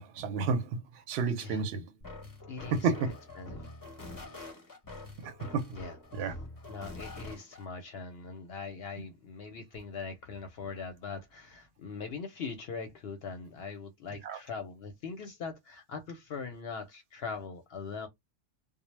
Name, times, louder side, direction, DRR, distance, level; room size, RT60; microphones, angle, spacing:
voice 1, 0.0-1.9 2.7-3.1 5.2-5.7 6.1-6.3 9.0-9.1 14.2-14.4, right 5 dB, 65° right, 0.7 m, -31 dB
sound 1, 2.0-7.6, left 2 dB, 25° left, 0.5 m, -45 dB
voice 2, 2.5-3.6 5.7-6.3 6.7-18.1, left 5 dB, 65° left, 0.7 m, -41 dB
2.0 x 2.0 x 3.0 m
omnidirectional pair, 1.3 m